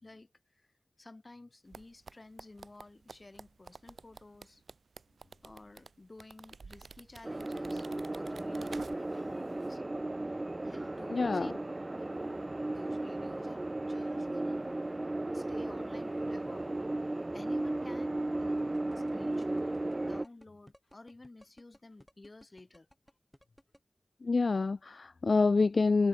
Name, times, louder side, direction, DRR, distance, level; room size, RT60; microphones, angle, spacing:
voice 1, 0.0-0.7 1.0-4.6 5.4-9.8 10.6-11.5 11.9-12.5 12.7-14.7 15.3-16.7 17.3-22.9, left 2 dB, 40° left, 5.0 m, -53 dB
sound 1, 1.7-9.3 9.6-9.7, right 4 dB, 85° right, 1.2 m, -51 dB
sound 2, 7.2-20.2, right 2 dB, 30° right, 0.6 m, -35 dB
voice 2, 11.1-11.5 24.2-26.1, left 3 dB, 70° left, 0.5 m, -27 dB
sound 3, 18.6-23.8, equal, 5° left, 4.3 m, -58 dB
wide cardioid pair, 70°, 0 cm